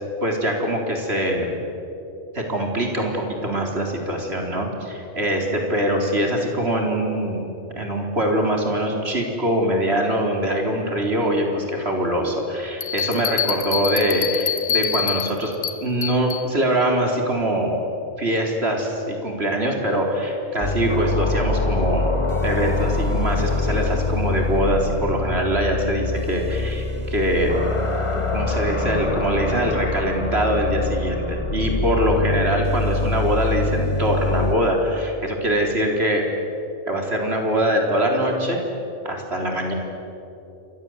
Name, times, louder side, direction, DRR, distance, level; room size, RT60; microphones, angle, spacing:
voice 1, 0.2-1.5 2.3-15.5 15.8-17.8 18.2-22.1 22.4-27.6 28.3-36.2 36.9-38.6 39.0-39.7, right 1 dB, 55° right, 1 dB, 4.4 m, -23 dB
Bell, 12.8-16.5, left 7 dB, 70° left, 1.7 m, -26 dB
sound 1, 20.6-34.6, left 3 dB, 25° left, 1.5 m, -24 dB
29.5 x 24.0 x 8.1 m, 2.8 s
omnidirectional pair, 1.3 m